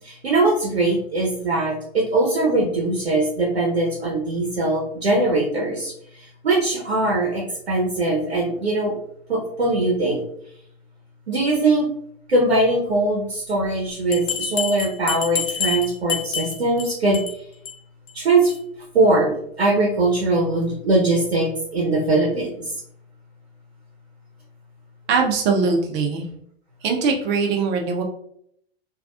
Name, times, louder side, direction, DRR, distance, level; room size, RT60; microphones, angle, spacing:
voice 1, 0.0-8.9 9.3-10.2 11.3-11.9 12.3-17.2 18.1-18.5 18.9-22.7, right 2 dB, 80° right, -3 dB, 0.8 m, -21 dB
Bell, 14.1-16.8 17.1-17.3 17.6-17.7 18.1-18.2 18.5-18.6, left 6 dB, 25° left, 0.7 m, -27 dB
voice 2, 25.1-26.2 26.8-28.0, right 4 dB, 35° right, 1 dB, 0.8 m, -21 dB
3.4 x 2.4 x 2.4 m, 0.70 s
figure-of-eight pair, 90°, 31 cm